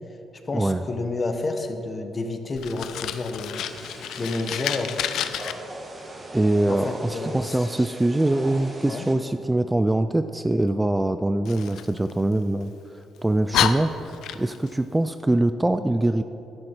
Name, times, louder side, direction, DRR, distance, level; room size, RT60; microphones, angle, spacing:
voice 1, 0.4-3.7 4.2-5.0 6.7-7.9 8.8-9.1, left 3 dB, 35° left, 6 dB, 1.1 m, -30 dB
Fire, 2.5-5.5 11.4-12.7 13.2-13.3 13.5-14.7, left 10 dB, 80° left, 0.4 m, -29 dB
sound 1, 3.5-9.1, right 1 dB, 30° right, 1.6 m, -40 dB
voice 2, 6.3-12.7 13.2-13.9 14.4-16.2, right 1 dB, 10° right, 10 dB, 0.3 m, -23 dB
11.5 x 9.8 x 4.5 m, 2.9 s
cardioid pair, 90°, 0 cm